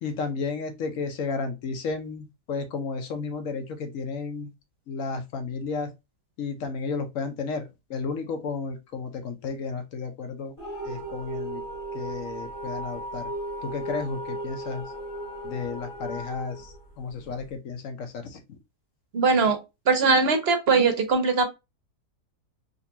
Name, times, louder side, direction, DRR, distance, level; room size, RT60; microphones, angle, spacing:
voice 1, 0.0-4.5 4.9-5.9 6.4-10.5 10.8-11.6 11.9-13.3 13.6-14.8 15.4-18.6, left 4 dB, 60° left, 1.0 m, -33 dB
sound 1, 10.6-17.5, right 1 dB, 15° left, 1.2 m, -36 dB
voice 2, 19.1-19.6 19.9-21.4, right 4 dB, 50° right, 0.8 m, -20 dB
3.9 x 2.6 x 2.6 m
omnidirectional pair, 1.7 m